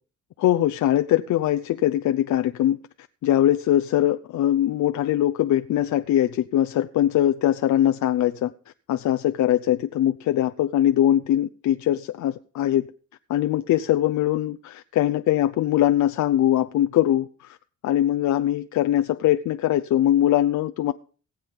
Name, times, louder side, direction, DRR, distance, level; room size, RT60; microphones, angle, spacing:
voice 1, 0.4-2.8 3.2-8.5 8.9-12.9 13.3-17.6 17.8-20.9, left 12 dB, 70° left, 0.7 m, -22 dB
18.0 x 7.7 x 5.4 m
cardioid pair, 90°, 30 cm